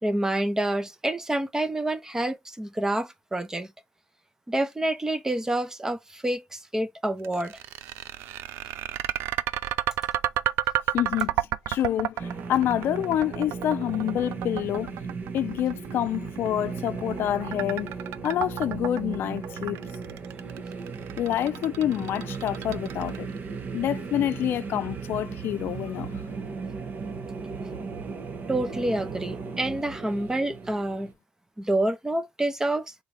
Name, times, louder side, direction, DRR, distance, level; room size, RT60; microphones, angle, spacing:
voice 1, 0.0-3.7 4.5-7.6 28.5-31.1 31.6-32.9, right 1 dB, 15° right, 0.8 m, -28 dB
sound 1, 7.2-23.4, right 13 dB, 85° right, 0.4 m, -31 dB
voice 2, 10.9-11.3 11.7-15.0 15.3-17.9 18.2-19.8 21.2-23.3 23.7-26.1, left 11 dB, 70° left, 0.5 m, -27 dB
sound 2, 12.2-31.1, right 5 dB, 45° right, 1.1 m, -36 dB
4.0 x 3.7 x 3.4 m
cardioid pair, 95°, 4 cm